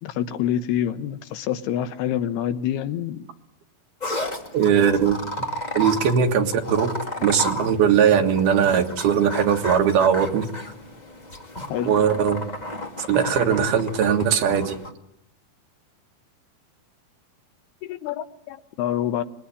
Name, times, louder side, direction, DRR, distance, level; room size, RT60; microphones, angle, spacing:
voice 1, 0.0-3.3 11.7-11.9 17.9-19.2, left 10 dB, 85° left, 3.2 m, -27 dB
sound 1, 4.0-14.9, left 1 dB, 30° left, 0.8 m, -33 dB
voice 2, 4.5-5.2 5.8-7.0 7.2-10.5 11.9-12.4 13.1-14.8, right 8 dB, 75° right, 3.6 m, -20 dB
25.5 x 21.5 x 9.9 m
omnidirectional pair, 4.5 m